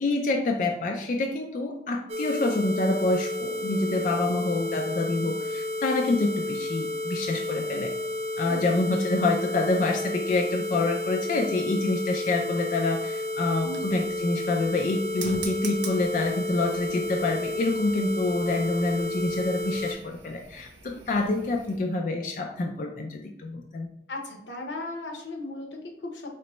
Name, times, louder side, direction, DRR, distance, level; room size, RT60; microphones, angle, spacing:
voice 1, 0.0-7.9 8.4-23.9, left 2 dB, 45° left, 3 dB, 0.3 m, -27 dB
sound 1, 2.1-19.9, left 2 dB, 35° right, 0.3 m, -32 dB
sound 2, 13.4-21.8, right 5 dB, 85° right, 0.6 m, -45 dB
voice 2, 13.6-14.0 20.9-21.3 24.1-26.3, left 1 dB, 90° left, 2 dB, 0.8 m, -37 dB
4.4 x 3.0 x 3.0 m, 0.80 s
head